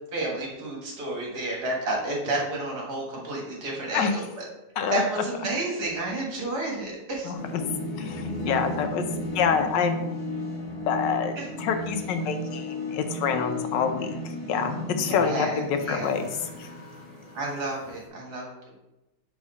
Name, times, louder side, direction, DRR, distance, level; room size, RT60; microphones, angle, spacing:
voice 1, 0.1-4.4 4.9-7.3 11.4-11.5 15.1-16.1 17.3-18.5, right 2 dB, 65° right, -2 dB, 2.1 m, -31 dB
sound 1, 7.3-18.0, left 1 dB, 35° left, 1.5 m, -34 dB
voice 2, 8.0-9.0 9.3-10.0 10.9-14.2 14.5-16.3 16.6-16.7, left 6 dB, 85° left, 7 dB, 1.4 m, -26 dB
4.8 x 4.0 x 5.4 m, 0.96 s
omnidirectional pair, 1.9 m